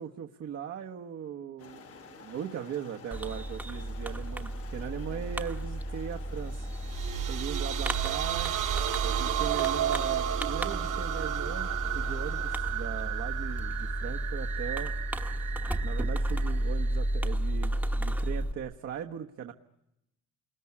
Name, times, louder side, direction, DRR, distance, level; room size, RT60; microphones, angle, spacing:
voice 1, 0.0-6.7 7.3-8.5 9.0-14.9 15.8-19.5, right 9 dB, 55° right, 2 dB, 1.3 m, -39 dB
sound 1, 1.6-12.6, left 6 dB, 50° left, 1.8 m, -50 dB
Fireworks, 3.1-18.5, right 1 dB, 5° right, 1.3 m, -33 dB
sound 2, 6.7-17.3, right 11 dB, 70° right, 2.2 m, -33 dB
29.0 x 20.5 x 9.8 m, 0.90 s
cardioid pair, 155°, 30 cm